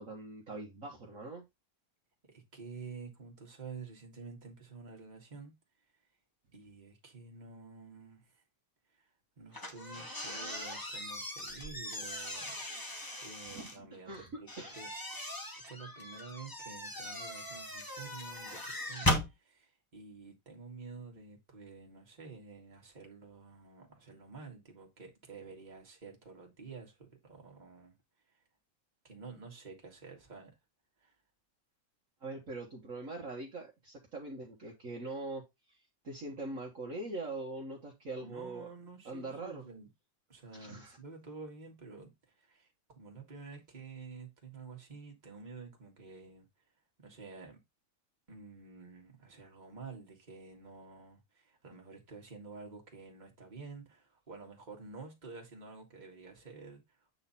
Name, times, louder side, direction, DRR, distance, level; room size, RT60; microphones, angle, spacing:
voice 1, 0.0-1.4 13.0-13.2 13.5-14.3 14.6-14.7 32.2-35.4 35.7-38.7 39.1-39.6 40.5-41.0, right 2 dB, 45° right, 1.7 m, -42 dB
voice 2, 2.3-5.5 6.5-8.4 8.9-9.1 9.4-12.6 13.2-15.4 15.6-28.0 28.3-28.4 29.0-30.5 31.0-31.2 38.2-39.9 40.3-46.5 47.0-47.6 48.3-57.0, right 4 dB, 20° right, 2.0 m, -50 dB
sound 1, 9.5-13.8 14.5-19.3, left 1 dB, 10° left, 1.2 m, -38 dB
8.8 x 3.9 x 4.2 m
omnidirectional pair, 2.2 m